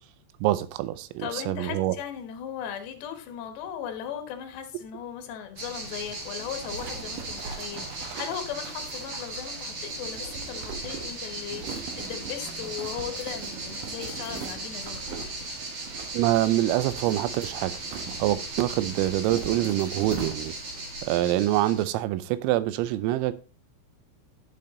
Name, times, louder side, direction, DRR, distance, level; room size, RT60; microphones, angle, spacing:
voice 1, 0.4-2.0 16.1-17.7 18.2-20.5 21.0-23.3, right 14 dB, 90° right, 3.4 m, -25 dB
voice 2, 1.2-15.4, left 9 dB, 70° left, 3.0 m, -37 dB
sound 1, 5.5-21.8, right 2 dB, 50° right, 1.9 m, -37 dB
sound 2, 6.4-20.8, right 6 dB, 65° right, 2.3 m, -41 dB
12.0 x 5.5 x 3.9 m
omnidirectional pair, 5.9 m